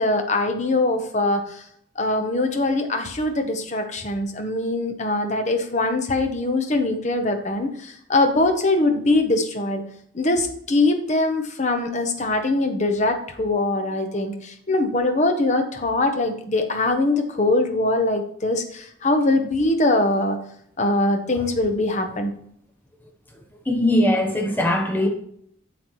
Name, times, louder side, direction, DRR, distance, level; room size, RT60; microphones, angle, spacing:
voice 1, 0.0-1.6 2.0-9.8 10.1-20.4 20.8-22.3, left 2 dB, 35° left, 0.9 m, -22 dB
voice 2, 23.7-25.1, left 1 dB, 10° left, 0.7 m, -20 dB
8.0 x 7.1 x 3.1 m
head